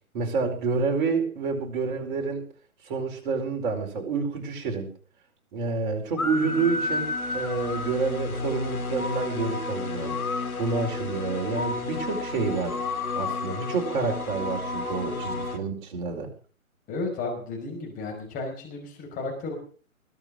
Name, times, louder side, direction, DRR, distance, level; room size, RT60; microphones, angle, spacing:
voice 1, 0.1-2.5 2.8-4.9 5.5-10.2 10.6-12.8 13.1-16.3, right 4 dB, 35° right, 3 dB, 4.6 m, -28 dB
sound 1, 6.2-15.6, left 3 dB, 85° left, 3.2 m, -31 dB
voice 2, 16.9-19.5, left 3 dB, 20° left, 2 dB, 5.3 m, -33 dB
20.5 x 8.3 x 6.5 m, 0.41 s
figure-of-eight pair, 140°, 42 cm